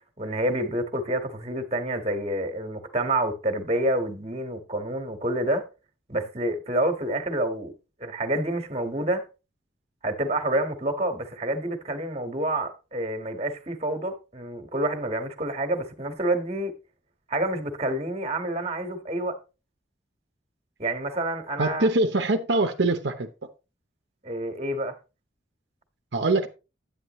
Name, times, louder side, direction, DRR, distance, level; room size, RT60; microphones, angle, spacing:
voice 1, 0.2-5.6 6.1-7.7 8.0-9.3 10.0-16.7 17.3-19.4 20.8-21.9 24.2-25.0, right 1 dB, 35° right, 1.5 m, -28 dB
voice 2, 21.6-23.3 26.1-26.5, right 2 dB, 75° right, 0.8 m, -23 dB
9.6 x 8.9 x 3.1 m
head